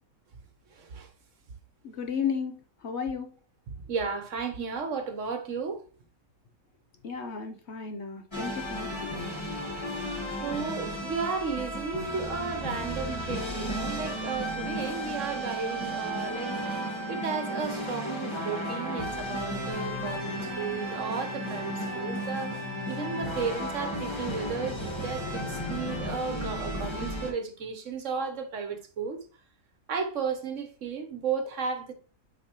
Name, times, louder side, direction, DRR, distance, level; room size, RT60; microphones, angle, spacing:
voice 1, 0.8-1.1 3.7-5.8 10.4-16.5 17.1-29.2 29.9-31.9, right 5 dB, 60° right, 1.3 m, -34 dB
voice 2, 2.0-2.5 2.8-3.3 7.0-9.2, left 6 dB, 55° left, 0.9 m, -33 dB
sound 1, 8.3-27.3, equal, 20° left, 1.4 m, -34 dB
7.6 x 5.2 x 3.0 m
omnidirectional pair, 1.5 m